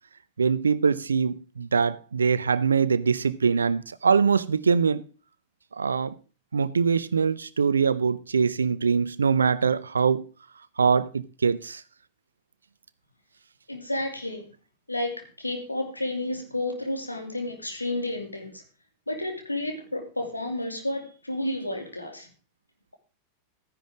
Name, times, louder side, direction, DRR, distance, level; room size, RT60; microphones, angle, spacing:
voice 1, 0.4-5.0 5.8-6.1 6.5-10.2 10.8-11.8, right 5 dB, 75° right, 0.6 m, -23 dB
voice 2, 13.7-14.5 14.9-18.6 19.1-22.3, left 1 dB, 85° left, 2.6 m, -31 dB
14.0 x 10.5 x 3.7 m
figure-of-eight pair, 90°, 0 cm